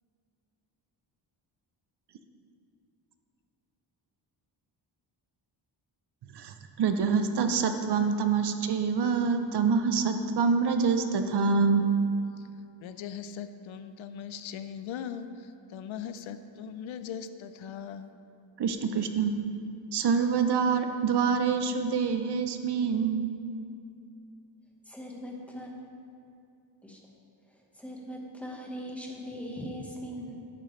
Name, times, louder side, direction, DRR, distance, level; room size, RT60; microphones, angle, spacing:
voice 1, 6.3-11.8 18.6-19.3 19.9-23.3, right 5 dB, 55° right, 7 dB, 0.6 m, -26 dB
voice 2, 12.8-18.1, left 8 dB, 80° left, 11 dB, 0.6 m, -40 dB
voice 3, 24.8-25.7 26.8-27.0 27.5-30.3, equal, 5° left, -2 dB, 1.1 m, -40 dB
11.5 x 8.7 x 3.1 m, 2.5 s
wide cardioid pair, 165°, 47 cm